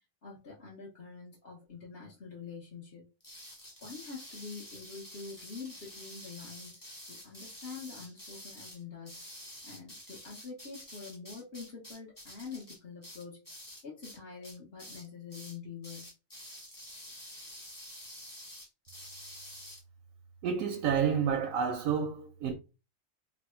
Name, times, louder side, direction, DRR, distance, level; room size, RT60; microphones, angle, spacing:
voice 1, 0.2-3.1 3.8-6.7 7.1-9.2 9.6-16.1, left 5 dB, 50° left, 1.3 m, -46 dB
sound 1, 3.2-14.2 14.4-15.1 15.3-15.6 15.8-19.8, left 1 dB, 15° left, 1.0 m, -48 dB
voice 2, 20.4-22.5, right 7 dB, 90° right, 1.0 m, -29 dB
3.2 x 2.2 x 4.3 m
omnidirectional pair, 1.4 m